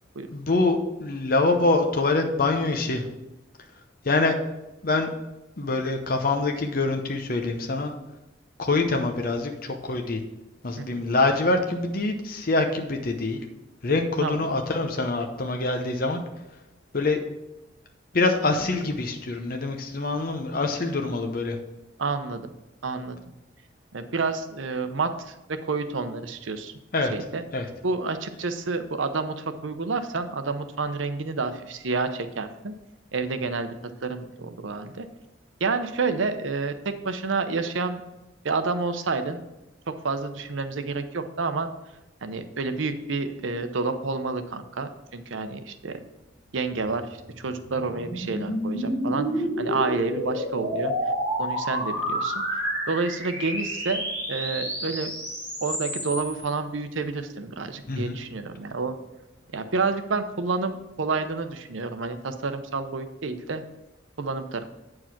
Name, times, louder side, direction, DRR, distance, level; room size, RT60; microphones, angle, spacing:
voice 1, 0.3-3.0 4.0-4.4 4.8-5.1 5.6-7.9 8.6-10.2 10.6-13.4 13.8-16.2 16.9-17.2 18.1-21.6 26.9-27.1 27.5-27.6 57.9-58.2, left 3 dB, 50° left, 4 dB, 0.7 m, -25 dB
voice 2, 22.0-22.5 22.8-23.2 23.9-26.7 27.1-27.4 27.8-32.7 33.1-33.7 34.0-35.1 35.6-38.0 38.4-39.4 40.0-41.7 42.2-46.0 46.5-50.9 51.4-55.1 55.6-58.9 59.5-63.6 64.2-64.6, right 4 dB, 90° right, 9 dB, 0.8 m, -29 dB
sound 1, 46.8-56.5, equal, 10° left, 3.5 m, -30 dB
8.6 x 4.7 x 5.9 m, 0.98 s
head